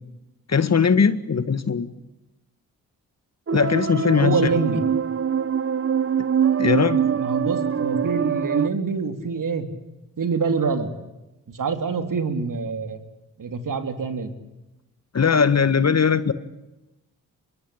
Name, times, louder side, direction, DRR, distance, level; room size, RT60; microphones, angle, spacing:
voice 1, 0.5-1.9 3.5-4.5 6.6-7.0 15.1-16.3, left 6 dB, 45° left, 13 dB, 1.7 m, -19 dB
sound 1, 3.5-8.7, right 7 dB, 35° right, 0.9 m, -23 dB
voice 2, 4.1-4.8 7.0-9.7 10.2-10.9 11.5-13.0 13.4-14.3, right 5 dB, 55° right, 7 dB, 3.5 m, -25 dB
24.5 x 22.0 x 8.7 m, 0.97 s
supercardioid pair, 50°, 37 cm